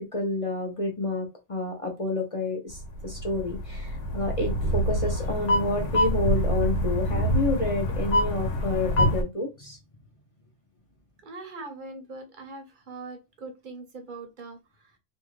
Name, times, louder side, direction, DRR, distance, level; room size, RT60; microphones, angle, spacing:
voice 1, 0.0-9.8, left 2 dB, 40° left, 0.5 m, -29 dB
sound 1, 2.7-9.2, equal, 80° left, 1.0 m, -26 dB
voice 2, 11.2-14.9, right 3 dB, 50° right, 0.8 m, -41 dB
2.6 x 2.4 x 3.0 m
omnidirectional pair, 1.3 m